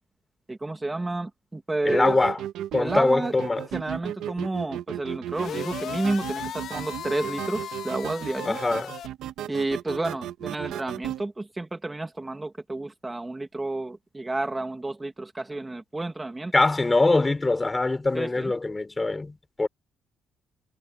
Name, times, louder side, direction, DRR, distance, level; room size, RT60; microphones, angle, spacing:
voice 1, 0.5-2.2 2.8-3.3 3.7-8.6 9.5-16.5 18.1-18.5, right 2 dB, 10° right, 2.2 m, -31 dB
voice 2, 1.8-2.4 2.7-3.7 8.4-8.9 16.5-19.7, left 2 dB, 15° left, 4.8 m, -23 dB
sound 1, 1.9-11.2, right 12 dB, 80° right, 1.4 m, -35 dB
sound 2, 5.3-9.1, left 9 dB, 55° left, 2.1 m, -37 dB
cardioid pair, 150°, 0 cm